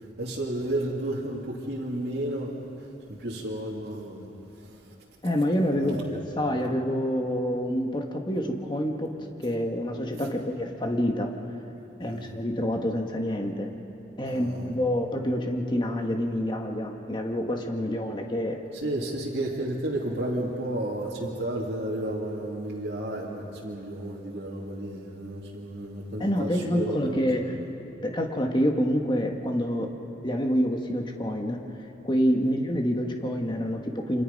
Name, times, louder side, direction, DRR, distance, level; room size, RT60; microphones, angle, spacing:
voice 1, 0.2-2.6 3.1-4.3 4.6-4.8 5.8-6.1 12.0-12.3 14.2-14.7 18.7-27.3, right 1 dB, 65° right, -5 dB, 2.8 m, -32 dB
voice 2, 5.2-9.1 9.4-11.3 12.0-13.7 14.2-18.6 26.2-27.5 28.0-29.9 30.2-31.6 32.0-34.2, equal, 25° left, 2 dB, 1.6 m, -27 dB
29.0 x 25.5 x 5.4 m, 3.0 s
head